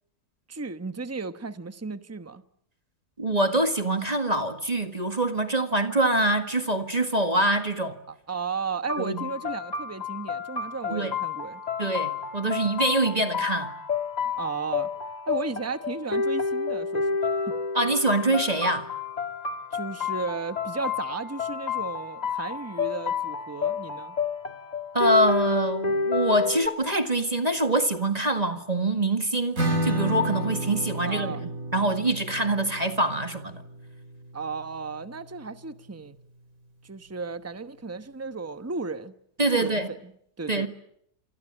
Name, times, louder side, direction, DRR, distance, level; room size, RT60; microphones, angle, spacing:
voice 1, 0.5-2.4 8.1-11.6 14.4-14.9 15.3-17.5 19.7-24.2 31.0-31.4 34.3-36.2 36.8-40.1 40.4-40.7, right 4 dB, 10° right, 1.0 m, -34 dB
voice 2, 3.2-8.0 9.0-9.3 10.9-11.1 11.8-13.7 17.7-18.9 24.9-33.6 39.4-39.9 40.5-40.7, right 1 dB, 25° right, 1.9 m, -25 dB
sound 1, 8.9-26.7, left 5 dB, 30° left, 1.6 m, -30 dB
Acoustic guitar / Strum, 29.6-35.0, right 1 dB, 70° right, 3.9 m, -32 dB
27.5 x 21.5 x 8.9 m
omnidirectional pair, 1.5 m